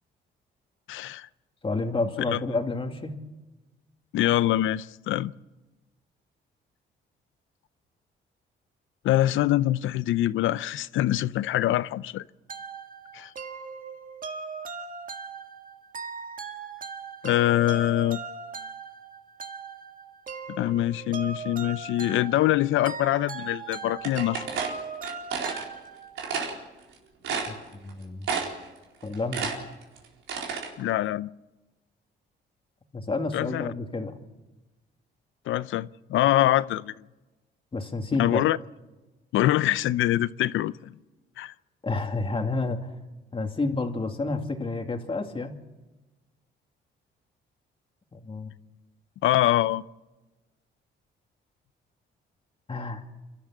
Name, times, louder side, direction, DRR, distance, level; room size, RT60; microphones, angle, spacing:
voice 1, 0.9-1.3 2.3-2.4 4.1-5.3 9.0-12.3 13.1-13.3 17.2-18.2 20.6-24.5 30.8-31.3 33.3-33.7 35.5-36.9 38.2-38.6 39.3-40.9 41.4-41.5 49.2-49.8, left 14 dB, 80° left, 0.6 m, -24 dB
voice 2, 1.6-3.2 27.5-28.3 29.0-29.5 32.9-34.2 37.7-38.4 41.8-42.9 43.3-45.6 48.1-48.5 52.7-53.0, left 3 dB, 25° left, 2.6 m, -30 dB
sound 1, 12.5-26.3, right 5 dB, 45° right, 1.8 m, -39 dB
sound 2, 24.0-25.6 26.2-26.5 26.9-27.0 27.2-27.9 28.2-28.7 29.0-30.7, right 6 dB, 80° right, 4.4 m, -31 dB
29.0 x 13.0 x 7.4 m
cardioid pair, 90°, 20 cm